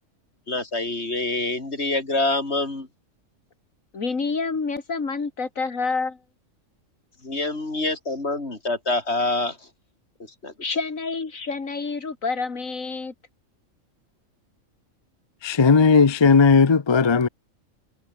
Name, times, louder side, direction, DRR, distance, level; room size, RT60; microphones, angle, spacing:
voice 1, 0.5-2.9 7.2-9.7 10.2-10.7, left 2 dB, 55° left, 4.5 m, -26 dB
voice 2, 3.9-6.2 10.6-13.1, left 4 dB, 85° left, 2.9 m, -28 dB
voice 3, 15.4-17.3, left 5 dB, 30° left, 0.5 m, -16 dB
omnidirectional pair, 1.4 m